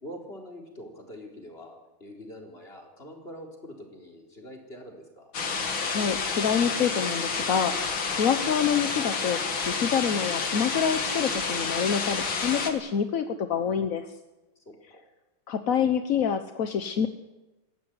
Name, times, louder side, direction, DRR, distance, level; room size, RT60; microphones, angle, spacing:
voice 1, 0.0-5.3 14.6-15.0, equal, 25° left, 1 dB, 4.1 m, -44 dB
sound 1, 5.3-12.7, left 5 dB, 70° left, 2.9 m, -29 dB
voice 2, 5.9-9.4 9.7-14.1 15.5-17.1, left 7 dB, 50° left, 8 dB, 1.1 m, -27 dB
22.5 x 16.0 x 9.7 m, 1.1 s
omnidirectional pair, 2.3 m